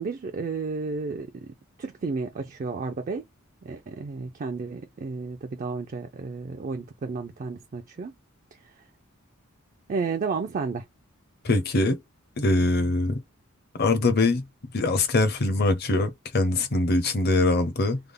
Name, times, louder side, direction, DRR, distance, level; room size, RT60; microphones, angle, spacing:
voice 1, 0.0-1.5 1.8-3.2 3.6-8.1 9.9-10.8, right 4 dB, 40° right, 0.4 m, -32 dB
voice 2, 11.4-12.0 12.4-13.2 13.8-14.4 14.7-18.0, left 2 dB, 50° left, 0.7 m, -23 dB
3.4 x 2.0 x 3.5 m
head